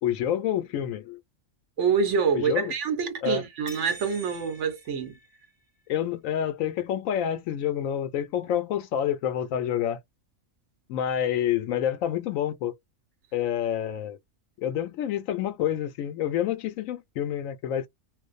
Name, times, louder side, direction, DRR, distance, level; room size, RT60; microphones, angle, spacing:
voice 1, 0.0-1.2 2.3-2.7 3.2-3.4 5.9-10.0 10.9-12.7 13.3-14.2 14.6-17.9, left 10 dB, 80° left, 1.0 m, -28 dB
voice 2, 1.8-5.2, right 6 dB, 65° right, 1.0 m, -26 dB
sound 1, 3.7-5.8, right 2 dB, 25° right, 0.7 m, -47 dB
2.5 x 2.0 x 2.4 m
omnidirectional pair, 1.4 m